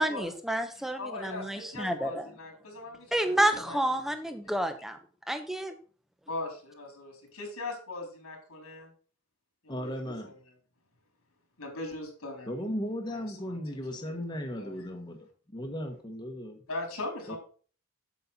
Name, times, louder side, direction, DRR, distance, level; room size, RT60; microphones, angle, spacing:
voice 1, 0.0-2.3 3.1-5.0 5.3-5.7, right 1 dB, ahead, 8 dB, 1.0 m, -29 dB
voice 2, 0.7-3.4 3.7-3.8 6.3-8.9 9.6-10.3 11.6-12.5 13.1-14.7 16.7-17.4, left 2 dB, 90° left, 2 dB, 3.9 m, -40 dB
voice 3, 9.7-10.3 12.5-16.6 17.3-17.4, equal, 20° left, 3 dB, 1.4 m, -36 dB
8.4 x 7.6 x 4.2 m, 0.40 s
head